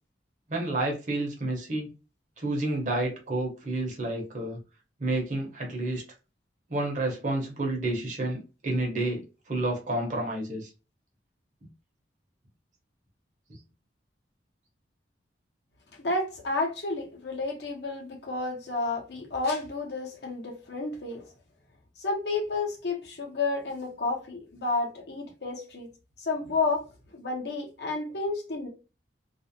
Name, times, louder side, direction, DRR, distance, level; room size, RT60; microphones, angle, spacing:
voice 1, 0.5-1.9 2.4-4.6 5.0-6.0 6.7-10.7, right 2 dB, 40° right, 0.8 m, -30 dB
voice 2, 16.0-21.2 22.0-25.9 26.2-26.8 27.1-28.7, left 3 dB, 60° left, 0.8 m, -31 dB
2.5 x 2.0 x 2.7 m
head